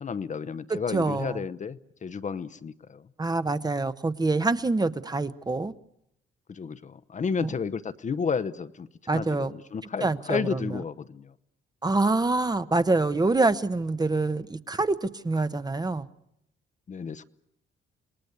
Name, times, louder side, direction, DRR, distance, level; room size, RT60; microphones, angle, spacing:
voice 1, 0.0-3.1 6.5-11.3 16.9-17.2, left 6 dB, 40° left, 13 dB, 0.9 m, -32 dB
voice 2, 0.7-1.4 3.2-5.7 7.4-7.5 9.1-9.5 10.0-10.8 11.8-16.1, right 3 dB, 20° right, 12 dB, 1.0 m, -26 dB
27.0 x 19.5 x 8.2 m, 0.78 s
cardioid pair, 90°, 20 cm